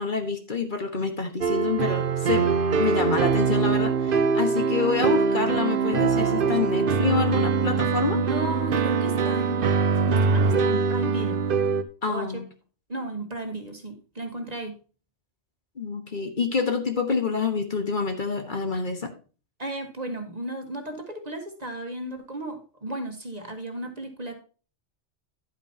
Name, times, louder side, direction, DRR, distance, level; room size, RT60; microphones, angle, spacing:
voice 1, 0.0-2.5 2.8-8.2 12.0-12.4 15.8-19.1, left 4 dB, 45° left, 5 dB, 1.4 m, -27 dB
sound 1, 1.4-11.8, right 5 dB, 50° right, 0.9 m, -23 dB
voice 2, 8.1-11.4 12.1-12.4 12.9-14.7 19.6-24.3, right 1 dB, 35° right, 5 dB, 1.5 m, -34 dB
11.0 x 9.0 x 2.8 m, 0.37 s
omnidirectional pair, 1.2 m